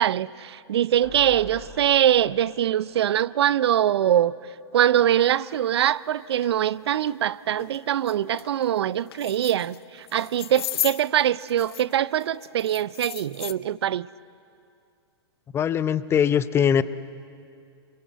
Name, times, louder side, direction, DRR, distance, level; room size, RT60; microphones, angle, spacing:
voice 1, 0.0-4.3 4.7-14.1, right 11 dB, 70° right, 0.6 m, -23 dB
sound 1, 1.0-4.3 4.6-4.7 5.0-5.1, left 1 dB, 85° left, 5.0 m, -46 dB
sound 2, 5.7-5.8 6.3-6.5 6.9-7.1 7.6-7.8 8.1-8.5 9.0-9.8 10.1-11.9 12.2-13.5, left 12 dB, 60° left, 0.7 m, -34 dB
voice 2, 15.5-16.8, left 8 dB, 15° left, 0.7 m, -21 dB
27.0 x 22.5 x 8.1 m
hypercardioid pair, 120°, 14 cm